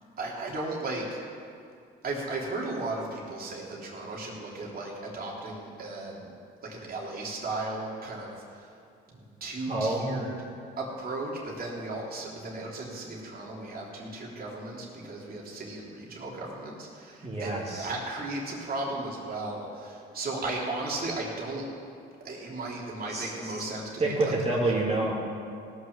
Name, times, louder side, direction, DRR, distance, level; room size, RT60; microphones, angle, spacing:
voice 1, 0.2-1.2 2.0-6.3 6.6-8.7 9.1-10.3 10.8-21.6 22.2-24.3, right 2 dB, 50° right, -4 dB, 3.1 m, -35 dB
voice 2, 9.7-10.3 17.2-17.9 23.1-23.6 24.0-25.1, right 2 dB, 30° right, -4 dB, 2.6 m, -28 dB
17.5 x 6.3 x 7.3 m, 2.5 s
cardioid pair, 90°, 20 cm